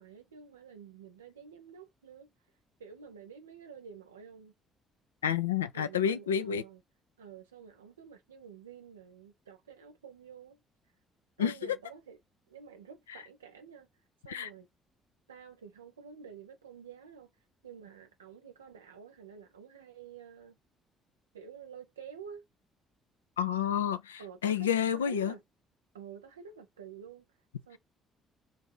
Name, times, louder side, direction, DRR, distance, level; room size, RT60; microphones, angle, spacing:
voice 1, 0.0-2.3 2.8-4.5 5.7-6.8 7.2-10.6 11.4-12.2 12.5-13.9 14.2-14.7 15.3-17.3 17.6-20.6 21.3-22.4 24.2-25.4 25.9-27.3 27.7-27.8, right 7 dB, 90° right, 0.7 m, -49 dB
voice 2, 5.2-6.6 11.4-11.8 13.1-13.2 14.3-14.5 23.4-25.3, left 8 dB, 90° left, 0.3 m, -30 dB
4.0 x 2.5 x 4.7 m
hypercardioid pair, 50°, 0 cm